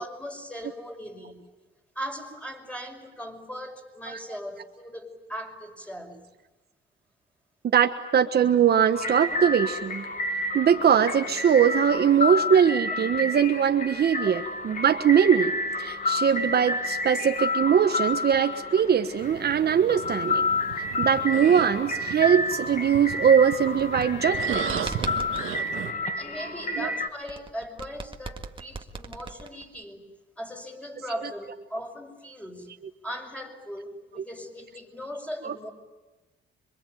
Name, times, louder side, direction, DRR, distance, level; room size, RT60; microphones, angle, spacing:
voice 1, 0.0-1.5 2.0-6.3 12.3-12.5 26.2-30.0 30.4-32.8 33.0-35.7, equal, 5° left, 3 dB, 5.6 m, -39 dB
voice 2, 7.6-10.1 10.5-15.5 15.8-20.5 21.0-24.9 26.8-26.9 35.4-35.5, right 8 dB, 55° right, 6 dB, 1.4 m, -21 dB
sound 1, 8.9-27.1, left 2 dB, 40° left, 2.0 m, -30 dB
sound 2, 19.2-25.9, right 10 dB, 90° right, 2.1 m, -37 dB
sound 3, 23.7-25.5 27.3-29.8, right 4 dB, 25° right, 1.9 m, -38 dB
27.0 x 23.5 x 9.3 m, 1.2 s
cardioid pair, 90°, 20 cm